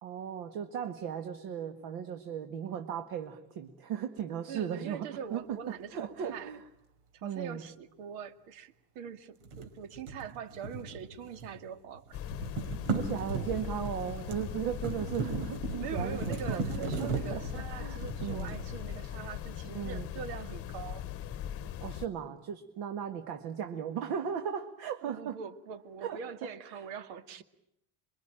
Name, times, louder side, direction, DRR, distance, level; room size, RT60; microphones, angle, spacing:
voice 1, 0.0-5.6 5.9-6.6 7.2-7.6 12.9-17.4 17.7-18.6 19.7-20.1 21.8-25.4 26.0-26.2 26.6-26.8, right 8 dB, 55° right, 7 dB, 1.8 m, -37 dB
voice 2, 4.5-6.5 7.1-12.2 15.8-21.0 25.0-27.4, right 7 dB, 70° right, 10 dB, 2.3 m, -43 dB
sound 1, 9.4-11.7 11.9-19.2, right 3 dB, 85° right, 5.1 m, -37 dB
sound 2, 12.1-22.1, left 11 dB, 30° left, 1.1 m, -40 dB
28.0 x 23.5 x 8.9 m, 0.77 s
cardioid pair, 170°, 43 cm